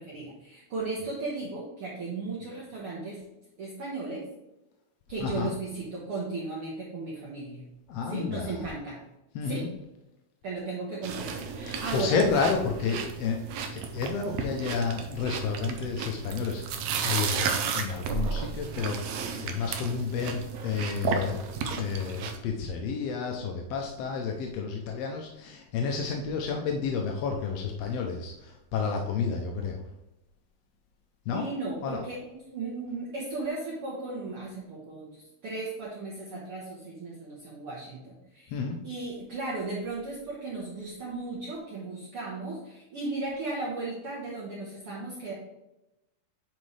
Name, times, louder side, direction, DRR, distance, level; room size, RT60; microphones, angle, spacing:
voice 1, 0.0-3.2 3.6-4.2 5.1-7.6 8.1-9.0 9.5-9.7 10.4-12.2 31.3-38.6 38.8-45.3, right 3 dB, 55° right, -5 dB, 1.8 m, -36 dB
voice 2, 5.2-5.5 7.9-8.6 9.3-9.7 11.7-13.4 13.7-21.4 21.8-29.8 31.3-31.5 31.8-32.0 38.5-38.8, left 5 dB, 80° left, 2 dB, 1.5 m, -31 dB
sound 1, 11.0-22.4, right 6 dB, 75° right, 1.7 m, -33 dB
9.4 x 4.4 x 3.2 m, 0.94 s
omnidirectional pair, 3.6 m